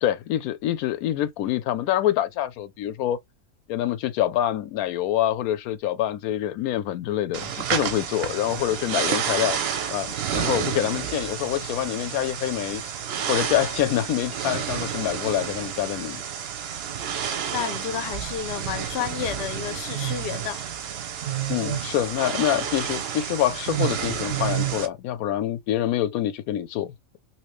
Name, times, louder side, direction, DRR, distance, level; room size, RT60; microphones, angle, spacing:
voice 1, 0.0-3.2 3.7-9.6 9.9-12.8 13.3-16.2 21.5-26.9, left 12 dB, 85° left, 1.0 m, -26 dB
sound 1, 7.3-24.9, right 9 dB, 60° right, 0.7 m, -30 dB
voice 2, 17.5-20.7, left 10 dB, 60° left, 0.8 m, -31 dB
3.0 x 2.8 x 3.1 m
omnidirectional pair, 1.5 m